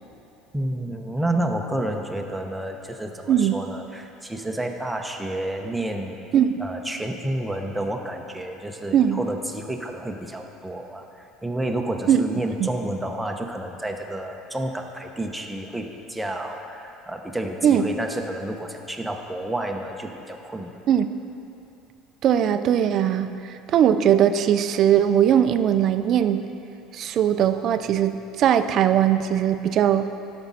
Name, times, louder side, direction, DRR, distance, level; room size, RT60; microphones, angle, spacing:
voice 1, 0.5-6.2 6.6-20.7, right 1 dB, 5° right, 2 dB, 0.8 m, -30 dB
voice 2, 22.2-26.4 26.9-30.1, right 9 dB, 45° right, 10 dB, 0.5 m, -20 dB
11.5 x 6.1 x 5.5 m, 2.8 s
cardioid pair, 130°, 0 cm